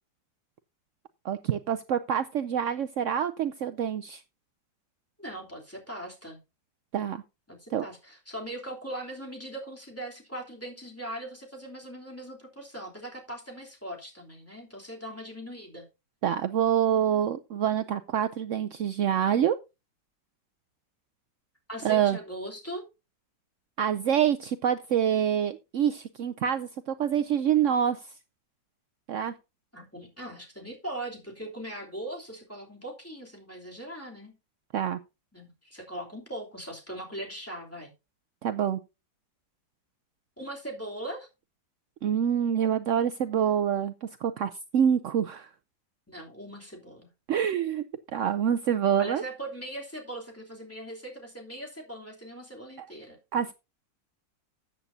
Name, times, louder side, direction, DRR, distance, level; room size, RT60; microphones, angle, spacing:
voice 1, 1.2-4.2 6.9-7.2 7.7-7.8 16.2-19.6 21.8-22.2 23.8-28.0 29.1-29.3 34.7-35.0 38.4-38.8 42.0-45.5 47.3-47.8 48.1-49.2 52.8-52.9 53.3-53.5, right 9 dB, 75° right, 0.7 m, -26 dB
voice 2, 5.2-6.4 7.5-15.9 21.7-22.9 29.7-34.3 35.3-37.9 40.4-41.3 46.1-47.1 49.0-53.2, right 1 dB, 5° left, 3.0 m, -40 dB
14.0 x 8.6 x 2.7 m
omnidirectional pair, 2.0 m